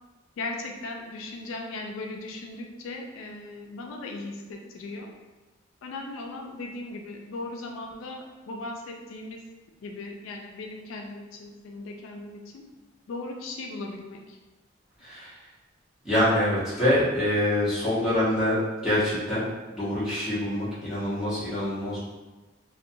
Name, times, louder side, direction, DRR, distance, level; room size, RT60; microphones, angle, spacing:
voice 1, 0.4-5.1 5.8-9.4 9.8-12.6 13.1-14.4, left 2 dB, 75° left, 1 dB, 0.3 m, -38 dB
voice 2, 15.0-15.4 16.0-18.6 18.8-19.4 19.7-22.0, left 1 dB, 5° right, -13 dB, 0.9 m, -25 dB
2.5 x 2.2 x 2.6 m, 1.2 s
head